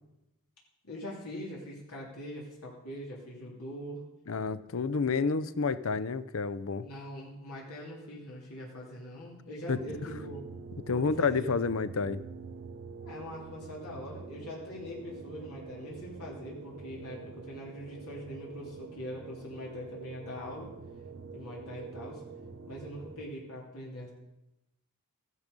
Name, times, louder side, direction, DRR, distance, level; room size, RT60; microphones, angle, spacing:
voice 1, 0.8-4.0 6.8-10.4 10.9-11.5 13.0-20.7 21.3-22.2 22.7-24.1, equal, 90° left, -3 dB, 3.1 m, -42 dB
voice 2, 4.3-6.9 9.7-9.8 10.9-12.2, left 4 dB, 65° left, 16 dB, 0.6 m, -29 dB
sound 1, 9.8-23.3, right 4 dB, 55° right, 0.8 m, -46 dB
14.5 x 11.0 x 5.3 m, 0.95 s
head